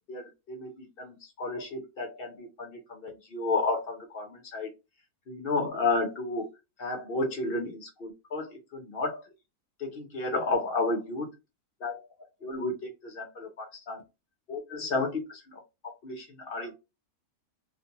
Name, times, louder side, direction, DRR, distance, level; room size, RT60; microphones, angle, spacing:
voice 1, 0.1-4.7 5.3-6.5 6.8-9.2 9.8-11.3 11.8-12.0 12.4-14.0 14.5-16.7, left 3 dB, 50° left, 3 dB, 0.7 m, -32 dB
2.5 x 2.1 x 2.8 m, 0.24 s
omnidirectional pair, 1.6 m